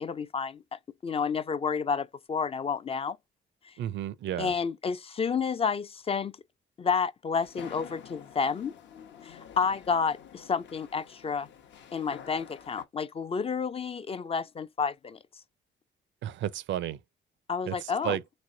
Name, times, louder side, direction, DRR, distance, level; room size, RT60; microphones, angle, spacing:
voice 1, 0.0-3.2 3.7-3.8 4.4-6.3 6.8-8.7 9.2-11.5 11.9-15.2 17.5-18.2, left 5 dB, 30° left, 0.3 m, -30 dB
voice 2, 3.8-4.5 16.2-17.0 17.7-18.2, right 11 dB, 70° right, 0.5 m, -32 dB
sound 1, 7.3-12.9, left 8 dB, 65° left, 0.8 m, -48 dB
3.2 x 3.0 x 2.6 m
cardioid pair, 90°, 20 cm